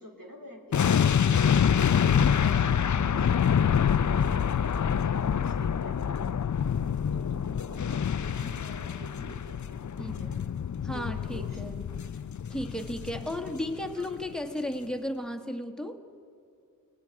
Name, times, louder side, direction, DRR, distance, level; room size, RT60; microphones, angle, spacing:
voice 1, 0.0-4.4 4.8-6.2 7.1-10.4 10.8-11.8 13.9-14.3, right 1 dB, 75° right, -1 dB, 3.6 m, -47 dB
sound 1, 0.7-13.9 14.1-14.3, left 8 dB, 60° left, 0.5 m, -26 dB
voice 2, 10.0-10.3 10.8-11.8 12.5-16.0, left 1 dB, ahead, 5 dB, 1.6 m, -34 dB
29.0 x 19.0 x 4.8 m, 2.6 s
wide cardioid pair, 50°, 34 cm